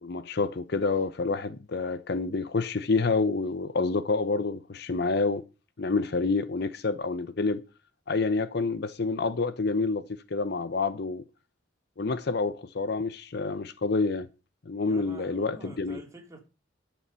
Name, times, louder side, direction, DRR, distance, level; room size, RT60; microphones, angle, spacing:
voice 1, 0.0-5.4 5.8-7.6 8.1-11.2 12.0-14.3 14.7-16.0, left 3 dB, 55° left, 0.7 m, -28 dB
voice 2, 14.8-16.4, right 1 dB, 15° right, 3.5 m, -47 dB
11.5 x 7.0 x 6.8 m
head